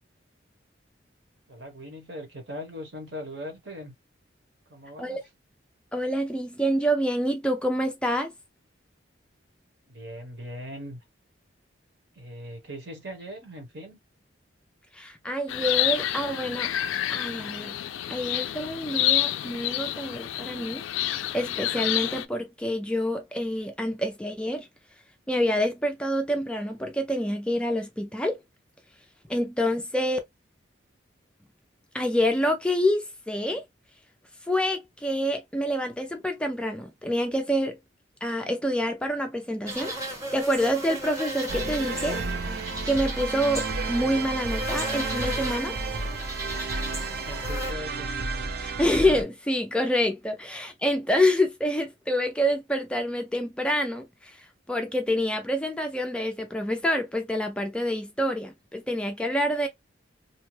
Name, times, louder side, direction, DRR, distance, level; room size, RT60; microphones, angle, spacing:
voice 1, 1.5-3.9 4.7-5.2 9.9-11.0 12.1-14.0 46.6-48.1, equal, 65° right, 1.1 m, -40 dB
voice 2, 5.9-8.3 14.9-16.7 17.1-17.8 18.1-24.7 25.3-28.4 29.3-30.2 31.9-33.6 34.5-37.8 38.2-39.9 40.3-42.2 42.5-42.6 42.9-46.0 48.6-59.7, equal, 5° left, 0.3 m, -27 dB
sound 1, 15.5-22.2, left 13 dB, 90° left, 0.3 m, -28 dB
sound 2, 39.7-47.7, equal, 15° right, 0.9 m, -35 dB
sound 3, 41.5-49.2, right 3 dB, 50° right, 0.5 m, -31 dB
2.8 x 2.2 x 3.1 m
head